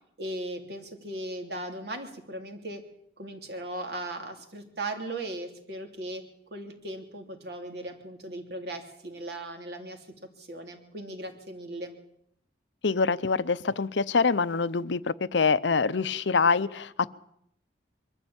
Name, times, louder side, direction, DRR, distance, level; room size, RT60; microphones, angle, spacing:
voice 1, 0.2-2.8 3.2-6.2 6.5-10.0 10.4-11.9, right 1 dB, 65° right, 5 dB, 3.1 m, -37 dB
voice 2, 12.8-17.1, left 4 dB, 85° left, 15 dB, 0.7 m, -25 dB
22.5 x 13.5 x 8.8 m, 0.74 s
head